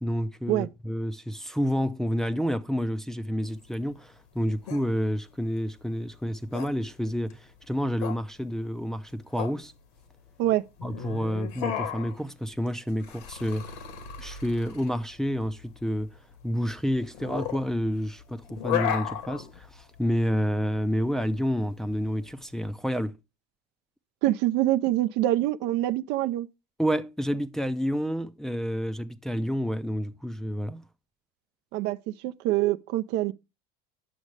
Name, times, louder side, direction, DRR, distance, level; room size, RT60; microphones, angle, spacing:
voice 1, 0.0-9.7 10.8-13.7 14.2-16.2 16.4-23.1 26.8-30.8, equal, ahead, 0.5 m, -29 dB
sound 1, 3.4-22.7, left 9 dB, 85° left, 2.2 m, -36 dB
voice 2, 24.2-26.5 31.7-33.3, right 15 dB, 60° right, 0.6 m, -25 dB
9.5 x 6.3 x 3.2 m
cardioid pair, 135°, 20 cm